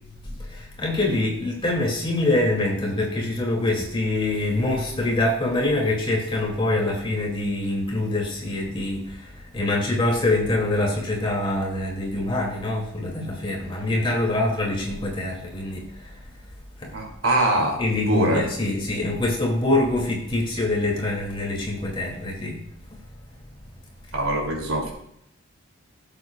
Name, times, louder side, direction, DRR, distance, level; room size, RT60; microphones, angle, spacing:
voice 1, 0.2-16.3 16.8-17.0 17.8-22.6 22.9-23.0, left 2 dB, 25° left, -1 dB, 2.6 m, -25 dB
voice 2, 16.9-17.8 18.1-18.4 24.1-24.9, right 1 dB, 85° right, 1 dB, 2.9 m, -23 dB
15.5 x 7.8 x 2.4 m, 0.75 s
head